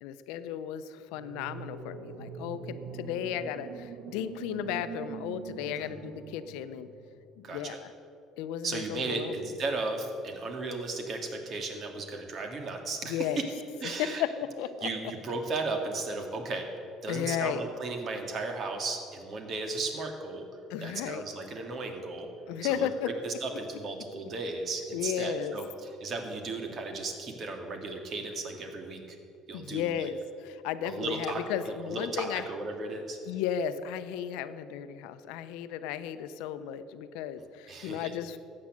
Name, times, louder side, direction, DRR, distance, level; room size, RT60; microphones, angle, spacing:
voice 1, 0.0-6.9 7.4-7.9 8.4-9.4 13.0-13.4 13.8-14.9 17.1-17.6 20.7-21.2 22.5-23.1 24.1-24.3 24.9-25.6 29.5-32.4 33.2-38.4, left 9 dB, 85° left, 11 dB, 0.7 m, -34 dB
sound 1, 1.1-7.2, right 6 dB, 80° right, 1.2 m, -43 dB
voice 2, 7.4-7.8 8.6-13.2 13.8-14.2 14.8-16.7 17.0-20.5 20.8-22.3 22.7-22.9 23.2-29.2 29.5-30.0 30.8-31.4 31.7-33.2 37.7-38.1, right 3 dB, 45° right, 4 dB, 2.1 m, -35 dB
13.5 x 8.8 x 7.6 m, 2.5 s
cardioid pair, 115°, 0 cm